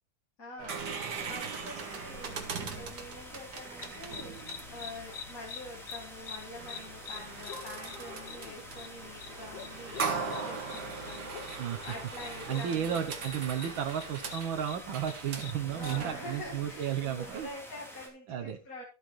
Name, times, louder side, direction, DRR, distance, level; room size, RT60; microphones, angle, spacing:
voice 1, 0.4-13.0 15.7-18.8, left 1 dB, 45° left, -3 dB, 2.5 m, -46 dB
sound 1, 0.6-17.5, right 5 dB, 55° right, 2.0 m, -40 dB
sound 2, 0.9-18.1, equal, ahead, 3.4 m, -49 dB
sound 3, 3.8-16.1, left 7 dB, 70° left, 1.7 m, -47 dB
voice 2, 12.5-17.5 18.3-18.6, right 9 dB, 75° right, 8 dB, 1.7 m, -33 dB
14.0 x 8.9 x 3.2 m, 0.33 s
omnidirectional pair, 2.2 m